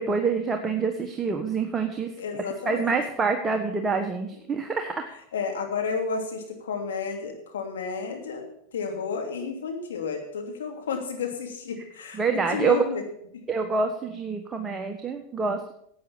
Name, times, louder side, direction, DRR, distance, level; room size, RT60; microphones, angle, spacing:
voice 1, 0.0-2.1 2.6-5.1 12.2-12.8 13.5-15.7, right 5 dB, 20° right, 4 dB, 1.4 m, -26 dB
voice 2, 2.2-3.0 5.3-13.0, left 5 dB, 80° left, 3 dB, 2.9 m, -32 dB
11.0 x 8.6 x 7.1 m, 0.72 s
hypercardioid pair, 95°, 0 cm